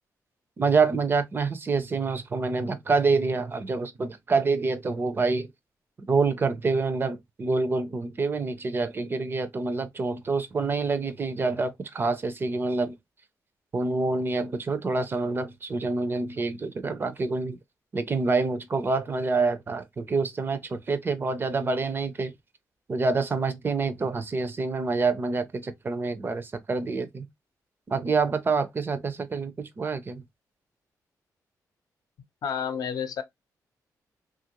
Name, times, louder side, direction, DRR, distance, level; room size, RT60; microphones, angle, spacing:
voice 1, 0.6-5.5 6.1-12.9 13.7-17.6 17.9-22.3 22.9-27.3 27.9-30.2, right 4 dB, 30° right, 0.5 m, -27 dB
voice 2, 32.4-33.2, left 7 dB, 70° left, 0.6 m, -30 dB
3.1 x 2.5 x 2.9 m
cardioid pair, 120°, 7 cm